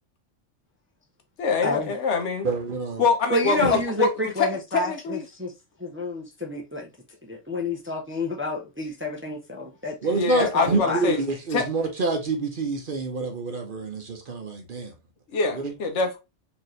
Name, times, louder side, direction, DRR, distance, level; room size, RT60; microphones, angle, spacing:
voice 1, 1.4-2.5 3.0-4.5 4.7-5.3 10.1-11.2 11.5-11.7 15.3-16.2, left 4 dB, 70° left, 1.2 m, -25 dB
voice 2, 2.4-3.0 3.6-3.8 10.0-14.9 15.5-15.7, right 4 dB, 50° right, 0.9 m, -27 dB
voice 3, 3.3-5.5 5.8-6.9 7.2-10.0 10.4-11.0, left 2 dB, 15° right, 0.6 m, -29 dB
4.5 x 2.9 x 3.0 m
omnidirectional pair, 1.2 m